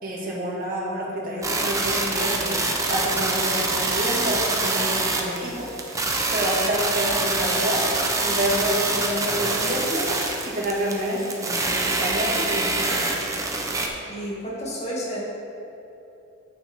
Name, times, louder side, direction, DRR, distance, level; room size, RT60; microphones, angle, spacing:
voice 1, 0.0-5.7 6.3-7.9 8.2-10.1 10.4-13.2, equal, 45° right, -4 dB, 2.0 m, -28 dB
sound 1, 1.4-13.9, right 2 dB, 15° right, 0.8 m, -25 dB
voice 2, 14.1-15.2, equal, 35° left, -5 dB, 2.2 m, -31 dB
10.5 x 8.9 x 3.6 m, 2.8 s
head